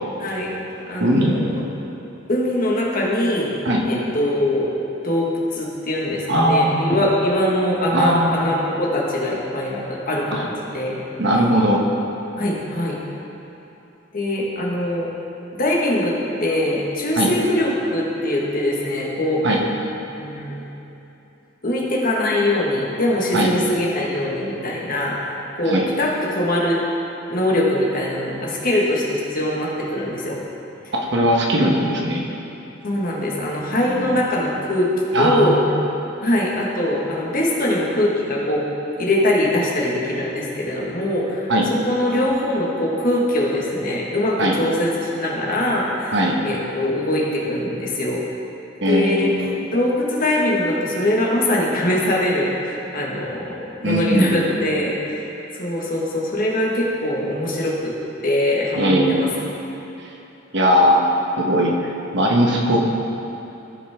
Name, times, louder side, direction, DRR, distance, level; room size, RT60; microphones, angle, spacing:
voice 1, 0.2-0.5 0.9-1.6 2.3-3.5 3.8-4.7 5.0-11.0 12.4-13.0 14.1-15.1 15.6-19.5 20.1-20.6 21.6-26.8 27.3-30.4 32.8-34.9 35.2-35.6 36.2-38.7 39.0-48.2 48.9-49.3 49.7-57.9 58.2-59.4, left 1 dB, 50° left, -4 dB, 1.6 m, -22 dB
voice 2, 1.0-1.4 3.6-3.8 6.3-6.8 7.9-8.5 10.3-10.4 11.2-11.8 17.2-17.3 19.4-19.6 23.3-23.5 25.6-25.9 31.1-32.2 33.9-34.2 35.1-35.6 41.5-41.7 44.4-44.6 46.1-46.3 48.8-49.6 53.8-54.4 58.8-59.2 60.5-62.8, equal, 65° right, -1 dB, 1.2 m, -19 dB
16.0 x 5.5 x 3.6 m, 3.0 s
head